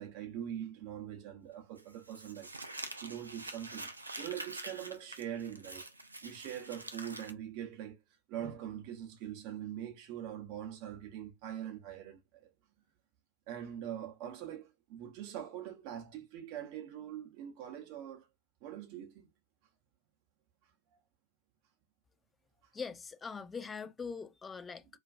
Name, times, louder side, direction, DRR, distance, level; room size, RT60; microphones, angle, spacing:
voice 1, 0.0-2.5 3.0-3.9 4.2-5.9 6.2-8.0 8.3-12.5 13.5-18.3 18.6-19.3, right 10 dB, 40° right, 0.6 m, -43 dB
Crumpling crinkling, 1.8-7.3, right 2 dB, 80° right, 0.4 m, -46 dB
voice 2, 22.7-24.9, left 5 dB, 15° left, 0.3 m, -42 dB
2.3 x 2.2 x 2.3 m
figure-of-eight pair, 105°, 0 cm